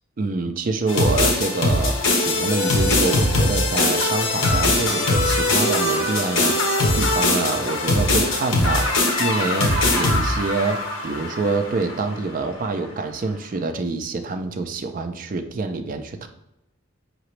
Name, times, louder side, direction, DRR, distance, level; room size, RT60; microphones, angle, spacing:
voice 1, 0.2-16.3, right 3 dB, 40° right, 7 dB, 0.3 m, -26 dB
sound 1, 0.9-12.0, left 2 dB, 65° left, 0.8 m, -21 dB
5.0 x 2.9 x 3.1 m, 0.87 s
head